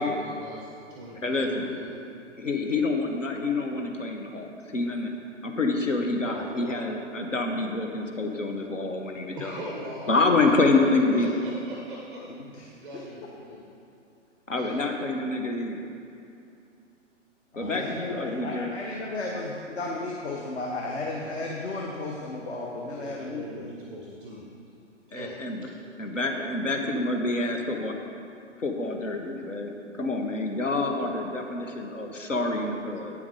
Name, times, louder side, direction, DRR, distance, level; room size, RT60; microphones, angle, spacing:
voice 1, 0.0-1.9 6.2-6.9 9.4-10.2 10.4-12.2 12.8-13.6 14.5-14.8 22.9-24.5 25.1-25.4, right 1 dB, ahead, -3 dB, 0.4 m, -41 dB
voice 2, 1.1-1.7 2.4-5.1 5.4-9.6 10.1-11.4 14.5-15.8 17.6-18.7 25.1-25.7 26.0-27.9 28.6-33.2, left 3 dB, 85° left, 3 dB, 1.1 m, -27 dB
voice 3, 12.5-13.0 17.5-23.6, left 2 dB, 60° left, -1 dB, 1.2 m, -34 dB
8.9 x 7.2 x 4.9 m, 2.6 s
figure-of-eight pair, 125°, 37 cm